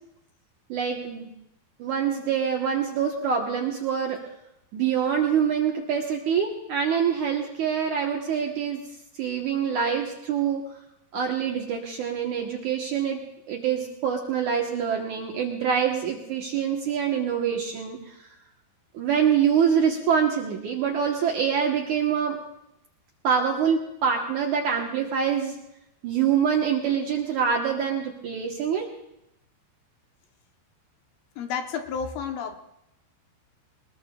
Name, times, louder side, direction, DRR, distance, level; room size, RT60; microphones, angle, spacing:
voice 1, 0.7-1.3 1.8-4.2 4.7-8.8 9.2-10.6 11.1-13.2 13.5-18.0 18.9-22.4 23.2-25.6 26.0-28.9, right 7 dB, 65° right, 0 dB, 2.0 m, -25 dB
voice 2, 31.4-32.6, left 6 dB, 70° left, 5 dB, 2.6 m, -31 dB
23.0 x 20.5 x 2.3 m, 0.82 s
omnidirectional pair, 4.8 m